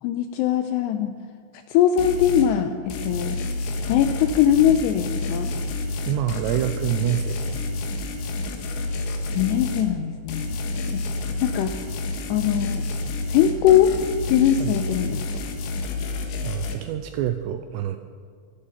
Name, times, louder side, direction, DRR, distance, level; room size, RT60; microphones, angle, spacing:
voice 1, 0.0-1.2 1.7-3.4 3.9-5.6 9.3-10.6 10.9-11.0 11.4-11.8 12.3-12.9 13.3-13.9 14.3-15.2, left 10 dB, 90° left, 8 dB, 2.5 m, -21 dB
sound 1, 2.0-2.5 2.9-9.9 10.3-16.8, left 2 dB, 75° left, 3.8 m, -29 dB
voice 2, 6.1-7.7 14.6-14.7 16.4-18.0, right 12 dB, 85° right, 8 dB, 2.4 m, -27 dB
24.0 x 10.5 x 5.7 m, 2.3 s
omnidirectional pair, 5.5 m